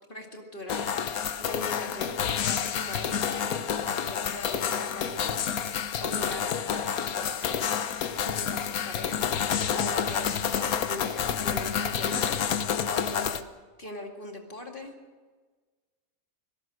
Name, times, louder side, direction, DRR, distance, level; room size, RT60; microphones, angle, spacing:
voice 1, 0.1-7.7 8.2-13.5 13.8-14.9, left 1 dB, 35° left, 2 dB, 2.4 m, -40 dB
sound 1, 0.7-13.4, left 8 dB, 80° left, 1.4 m, -29 dB
25.0 x 17.5 x 6.3 m, 1.4 s
omnidirectional pair, 1.5 m